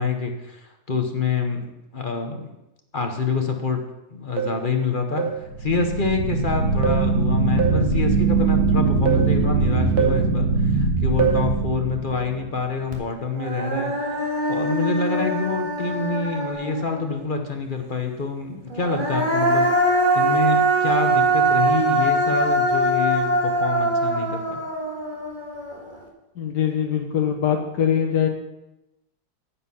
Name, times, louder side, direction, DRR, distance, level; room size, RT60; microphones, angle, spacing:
voice 1, 0.0-1.7 1.9-2.6 2.9-3.8 4.1-19.7 20.1-24.6, left 4 dB, 35° left, 4 dB, 0.9 m, -27 dB
sound 1, 4.4-4.7 5.2-5.5 6.8-7.1 7.6-7.9 9.1-9.4 10.0-10.3 11.2-11.5 13.8-14.0 14.6-14.8, right 7 dB, 70° right, 1.7 m, -25 dB
sound 2, 5.4-12.5, right 3 dB, 85° right, 2.4 m, -21 dB
Human voice, 12.9-13.0 13.4-17.0 18.7-26.0, right 1 dB, 30° right, 1.9 m, -22 dB
voice 2, 26.4-28.3, left 8 dB, 75° left, 1 dB, 1.8 m, -22 dB
9.7 x 8.3 x 5.6 m, 0.93 s
omnidirectional pair, 1.8 m